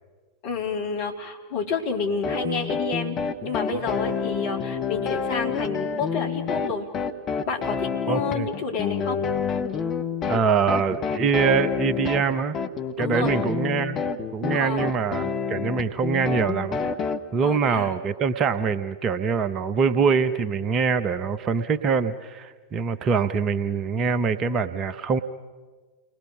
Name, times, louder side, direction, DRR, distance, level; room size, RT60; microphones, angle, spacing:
voice 1, 0.4-3.2 3.4-6.9 7.5-9.2 13.0-13.3 14.5-14.9 17.4-17.9, left 4 dB, 45° left, 2 dB, 3.5 m, -29 dB
sound 1, 2.2-17.2, left 6 dB, 30° left, 1.4 m, -28 dB
voice 2, 8.1-8.5 10.3-12.6 13.0-14.0 14.3-16.8 17.3-25.2, right 5 dB, 30° right, 12 dB, 1.0 m, -24 dB
29.5 x 21.0 x 6.4 m, 1.4 s
figure-of-eight pair, 90°, 0 cm